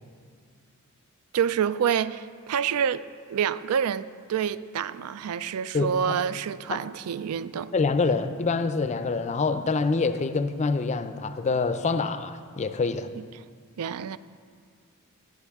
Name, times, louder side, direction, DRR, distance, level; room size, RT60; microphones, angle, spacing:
voice 1, 1.3-7.7 13.2-13.3 13.8-14.2, right 8 dB, 80° right, 0.4 m, -28 dB
voice 2, 5.7-6.2 6.7-6.8 7.7-13.1, left 4 dB, 30° left, 0.4 m, -26 dB
18.5 x 8.1 x 3.5 m
head